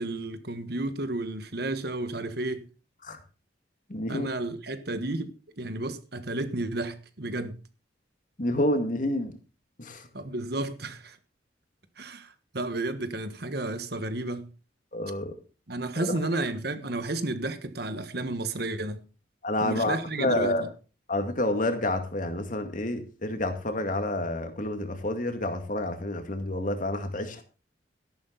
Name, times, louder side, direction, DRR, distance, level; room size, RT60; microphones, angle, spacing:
voice 1, 0.0-2.7 4.1-7.6 10.1-11.2 12.0-14.5 15.7-19.0 19.6-20.7, right 2 dB, 60° right, 1.5 m, -32 dB
voice 2, 3.9-4.3 8.4-9.3 9.8-10.1 14.9-15.3 16.0-16.2 19.4-20.7 21.1-27.4, left 1 dB, 45° left, 2.2 m, -29 dB
13.5 x 11.5 x 4.0 m
head